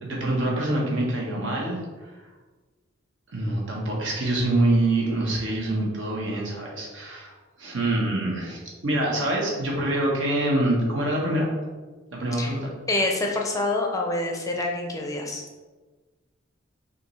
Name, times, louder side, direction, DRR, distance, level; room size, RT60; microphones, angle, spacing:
voice 1, 0.0-1.8 3.3-7.3 7.6-11.5 12.1-12.7, right 1 dB, 75° right, -2 dB, 1.1 m, -25 dB
voice 2, 12.9-15.4, left 2 dB, 15° left, 1 dB, 0.5 m, -26 dB
5.5 x 2.6 x 3.1 m, 1.3 s
head